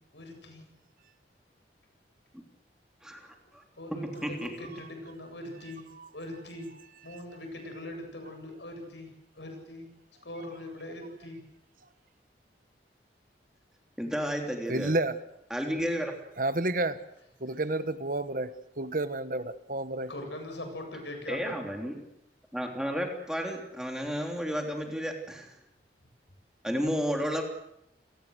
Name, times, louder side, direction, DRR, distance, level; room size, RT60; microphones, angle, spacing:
voice 1, 0.1-0.6 3.8-5.9 6.1-6.7 7.0-9.9 10.2-11.4 20.1-21.5, left 1 dB, 80° left, 4 dB, 7.9 m, -41 dB
voice 2, 3.0-3.6 3.9-4.5 14.0-14.9 15.5-16.1 21.3-22.0 22.5-25.5 26.6-27.4, equal, 5° right, 3 dB, 3.3 m, -32 dB
voice 3, 14.7-15.2 16.4-17.0 17.4-20.1, right 2 dB, 50° right, 13 dB, 1.3 m, -30 dB
28.5 x 19.0 x 8.1 m, 0.79 s
head